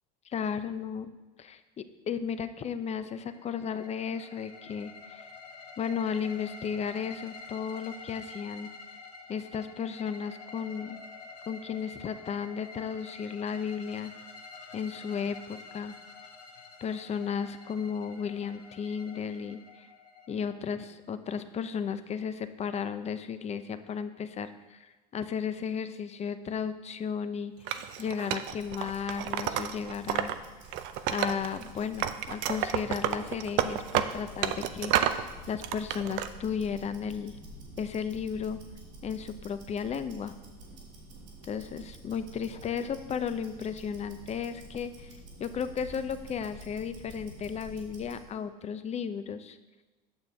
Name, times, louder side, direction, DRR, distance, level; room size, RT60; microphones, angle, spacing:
voice 1, 0.3-1.1 1.4-5.2 5.8-8.7 9.3-11.0 11.5-14.1 14.7-15.9 16.8-19.9 20.3-20.8 21.1-27.5 28.0-30.3 31.1-37.4 37.8-38.6 39.0-40.3 41.5-45.1 45.4-49.6, left 7 dB, 30° left, 11 dB, 0.6 m, -34 dB
sound 1, 3.1-20.9, left 4 dB, 90° left, 0.9 m, -48 dB
Wood, 27.7-30.3 30.7-31.7 32.0-35.2 35.6-36.3, right 11 dB, 60° right, 0.5 m, -30 dB
Tick-tock, 28.4-48.3, right 1 dB, 90° right, 2.8 m, -49 dB
8.9 x 6.8 x 3.4 m, 1.2 s
hypercardioid pair, 80°, 21 cm